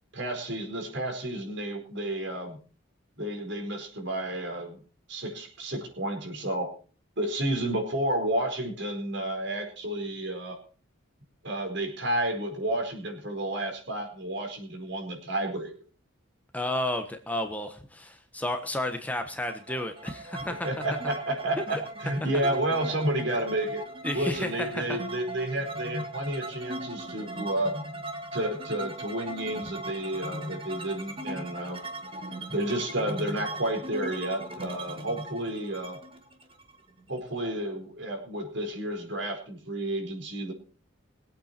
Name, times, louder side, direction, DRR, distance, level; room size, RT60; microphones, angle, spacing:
voice 1, 0.1-2.6 3.2-4.8 5.1-6.7 7.2-10.6 11.4-15.7 20.6-23.8 24.1-27.7 28.3-31.8 32.5-36.0 37.1-40.5, right 1 dB, 55° right, 4 dB, 4.6 m, -31 dB
voice 2, 16.5-20.7 21.6-21.8 24.0-25.0, left 1 dB, 5° left, 6 dB, 1.1 m, -32 dB
sound 1, 19.5-37.2, right 1 dB, 25° right, 2.0 m, -39 dB
22.5 x 8.7 x 4.4 m, 0.41 s
head